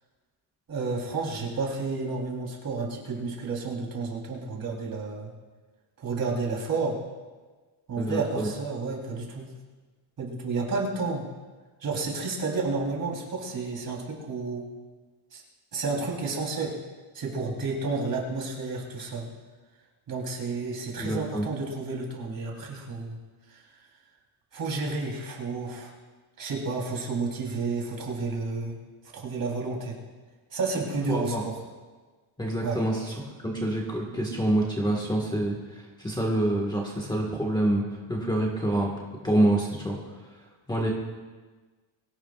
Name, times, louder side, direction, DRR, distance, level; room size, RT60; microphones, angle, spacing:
voice 1, 0.7-5.3 6.0-7.0 7.9-9.5 10.2-11.2 11.8-14.7 15.3-15.4 15.7-16.7 17.1-19.3 20.1-23.2 23.5-23.6 24.5-25.9 26.4-28.8 29.1-30.0 30.5-31.6 32.6-32.8, right 3 dB, 45° right, -2 dB, 3.7 m, -31 dB
voice 2, 8.0-8.5 21.0-21.5 31.1-31.4 32.4-37.8 38.1-38.9 39.2-40.0 40.7-40.9, right 1 dB, 10° left, -3 dB, 1.6 m, -27 dB
23.0 x 17.5 x 2.4 m, 1.3 s
cardioid pair, 175°, 49 cm